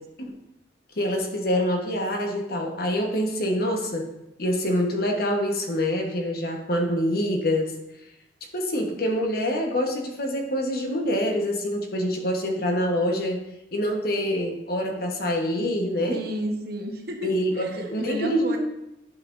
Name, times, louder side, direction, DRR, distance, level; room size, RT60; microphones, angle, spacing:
voice 1, 1.0-4.1 4.4-7.7 8.5-13.4 13.7-16.2 17.2-18.6, equal, 55° left, 2 dB, 1.1 m, -25 dB
voice 2, 16.1-18.6, right 1 dB, 55° right, 3 dB, 1.0 m, -32 dB
10.5 x 5.8 x 2.6 m, 0.89 s
head